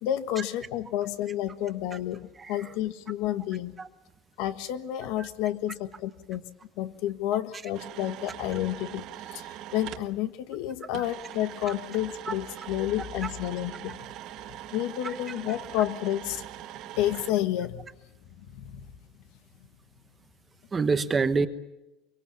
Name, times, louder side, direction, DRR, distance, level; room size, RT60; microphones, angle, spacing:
voice 1, 0.0-3.7 4.4-6.4 6.8-14.0 14.7-16.4 16.9-17.9 18.4-18.9, left 12 dB, 60° left, 11 dB, 1.4 m, -30 dB
voice 2, 2.4-2.7 3.8-3.9 5.2-5.3 11.7-11.8 12.3-12.4 20.7-21.5, right 4 dB, 15° right, 10 dB, 1.0 m, -27 dB
sound 1, 7.7-10.1 10.9-17.3, right 13 dB, 45° right, 1.5 m, -42 dB
24.0 x 24.0 x 7.2 m, 0.96 s
cardioid pair, 175°, 0 cm